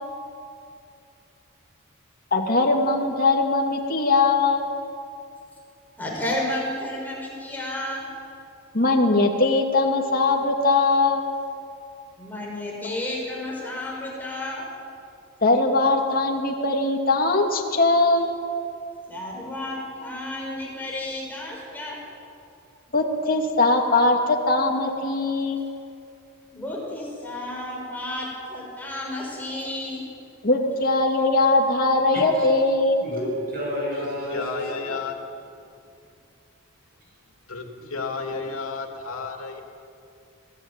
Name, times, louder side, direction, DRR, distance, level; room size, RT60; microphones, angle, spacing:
voice 1, 2.3-4.7 8.7-11.2 15.4-18.4 22.9-25.7 30.4-33.1, left 2 dB, 45° left, 1 dB, 2.5 m, -21 dB
voice 2, 6.0-8.1 12.2-14.7 19.1-22.0 26.5-30.0, left 1 dB, 10° left, -3 dB, 5.9 m, -32 dB
voice 3, 32.1-32.5 33.0-34.9 37.9-38.0, left 1 dB, 45° right, -2 dB, 7.1 m, -31 dB
voice 4, 34.3-35.1 37.5-39.6, left 4 dB, 90° left, 3 dB, 3.0 m, -32 dB
26.5 x 17.5 x 9.0 m, 2.5 s
head